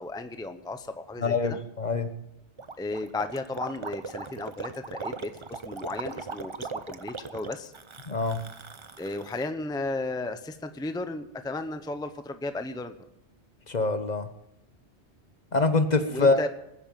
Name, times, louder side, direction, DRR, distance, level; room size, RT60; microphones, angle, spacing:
voice 1, 0.0-1.6 2.8-7.7 9.0-12.9 16.1-16.5, left 2 dB, 5° left, 9 dB, 0.7 m, -34 dB
voice 2, 1.2-2.1 8.1-8.4 13.7-14.3 15.5-16.5, left 3 dB, 40° left, 10 dB, 1.0 m, -24 dB
Gurgling, 2.6-9.5, right 4 dB, 30° right, 0.7 m, -39 dB
20.0 x 8.9 x 7.5 m, 0.84 s
omnidirectional pair, 1.1 m